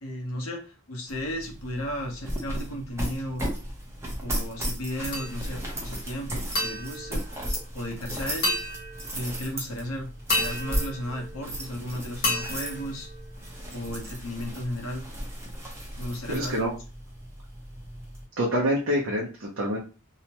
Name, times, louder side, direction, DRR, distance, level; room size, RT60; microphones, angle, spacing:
voice 1, 0.0-3.4 4.2-7.2 7.7-8.5 9.1-13.1 13.7-15.1 16.0-16.6, equal, 85° left, 1 dB, 0.9 m, -34 dB
sound 1, 1.1-18.2, equal, 15° right, 0.6 m, -35 dB
sound 2, 5.1-5.7 6.5-8.0 8.4-9.4 10.3-11.8 12.2-13.6, left 1 dB, 40° left, 0.8 m, -32 dB
voice 2, 16.3-16.7 18.4-19.8, equal, 65° right, -2 dB, 0.6 m, -26 dB
2.8 x 2.1 x 2.8 m, 0.34 s
head